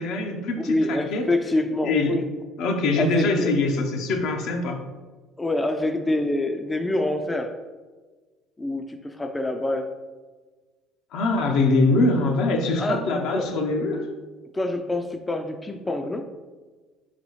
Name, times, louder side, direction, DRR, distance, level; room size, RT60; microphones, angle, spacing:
voice 1, 0.0-1.2 1.8-2.2 2.6-4.8 11.1-14.1, left 2 dB, 70° left, 3 dB, 0.6 m, -23 dB
voice 2, 0.7-2.2 3.0-3.6 5.4-7.5 8.6-9.9 12.8-13.0 13.3-13.6 14.5-16.3, left 1 dB, 15° left, 5 dB, 0.4 m, -26 dB
4.0 x 3.9 x 3.1 m, 1.3 s
supercardioid pair, 80°, 0 cm